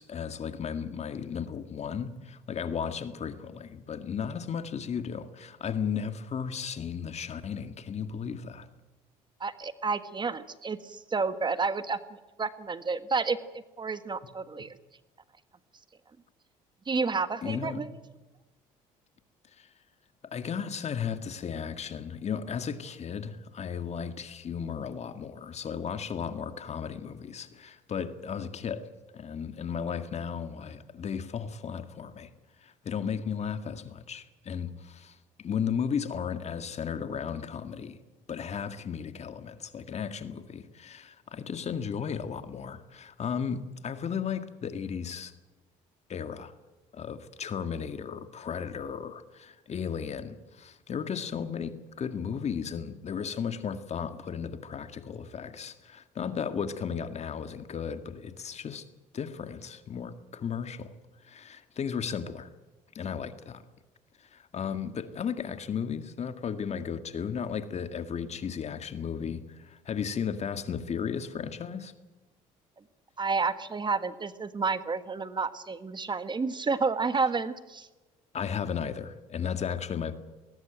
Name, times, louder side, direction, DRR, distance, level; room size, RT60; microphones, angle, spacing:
voice 1, 0.0-8.7 17.4-17.8 19.6-19.7 20.2-28.9 29.1-32.3 32.6-38.0 38.3-45.3 46.1-46.5 46.9-58.8 59.1-60.9 61.2-62.5 62.9-63.6 64.2-71.9 78.3-80.1, left 7 dB, 45° left, 10 dB, 1.9 m, -35 dB
voice 2, 9.4-13.4 13.8-14.7 16.9-17.9 73.2-77.9, right 4 dB, 30° right, 12 dB, 1.5 m, -30 dB
20.0 x 19.5 x 9.2 m, 1.1 s
supercardioid pair, 75°, 16 cm